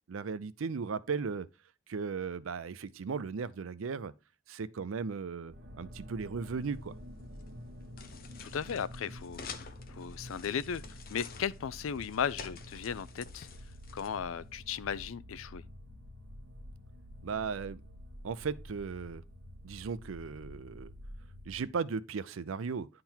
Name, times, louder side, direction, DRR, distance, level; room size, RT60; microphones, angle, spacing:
voice 1, 0.1-1.5 1.9-4.1 4.5-6.9 17.2-17.8 18.2-19.2 19.6-20.9 21.5-22.9, right 5 dB, 90° right, 0.5 m, -36 dB
sound 1, 5.4-21.7, left 1 dB, 55° right, 1.3 m, -49 dB
sound 2, 6.6-14.7, left 5 dB, 45° left, 0.8 m, -50 dB
voice 2, 8.4-10.8 11.1-13.5 13.9-15.6, left 7 dB, 85° left, 0.4 m, -36 dB
10.5 x 3.8 x 4.4 m
head